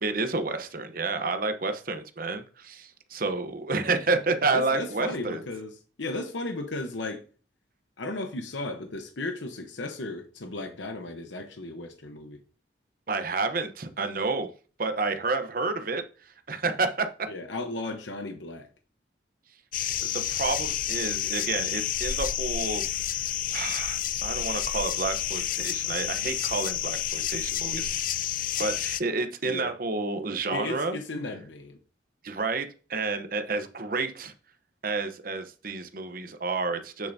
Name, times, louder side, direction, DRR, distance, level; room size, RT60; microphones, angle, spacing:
voice 1, 0.0-5.4 13.1-14.5 14.8-17.1 20.1-27.9 28.6-31.0 32.2-34.3 34.8-37.1, right 3 dB, 50° right, 0.9 m, -30 dB
voice 2, 4.5-7.2 8.0-12.4 17.3-18.7 29.4-29.7 30.5-31.8, left 2 dB, 90° left, 1.0 m, -35 dB
sound 1, 19.7-29.0, left 11 dB, 50° left, 0.5 m, -30 dB
8.4 x 6.9 x 2.7 m
head